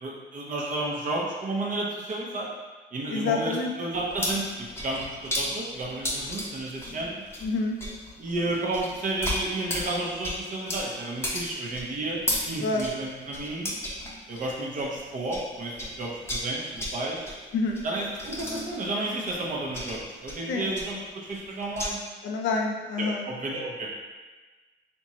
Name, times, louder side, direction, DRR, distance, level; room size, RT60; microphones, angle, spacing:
voice 1, 0.0-2.5 2.9-7.2 8.2-13.7 14.3-17.3 17.8-22.0 23.0-23.9, right 2 dB, 40° right, -2 dB, 0.7 m, -32 dB
voice 2, 3.1-3.7 7.4-7.8 12.6-12.9 17.5-17.8 20.5-21.1 22.2-23.2, left 3 dB, 70° left, 1 dB, 0.6 m, -28 dB
sound 1, 3.9-15.5 15.8-21.9, left 1 dB, 10° left, 0.8 m, -35 dB
3.4 x 3.0 x 2.8 m, 1.3 s
cardioid pair, 90°, 20 cm